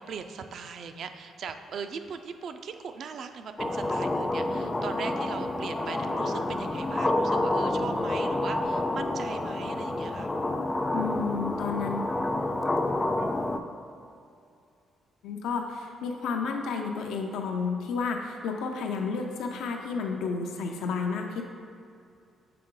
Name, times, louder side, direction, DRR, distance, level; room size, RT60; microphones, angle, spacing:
voice 1, 0.0-10.3, right 5 dB, 60° right, 8 dB, 0.4 m, -39 dB
sound 1, 3.6-13.6, left 2 dB, 20° left, 0.3 m, -28 dB
voice 2, 10.9-12.1 15.2-21.4, left 5 dB, 85° left, 2 dB, 0.4 m, -31 dB
6.7 x 3.9 x 3.7 m, 2.5 s
cardioid pair, 90°, 0 cm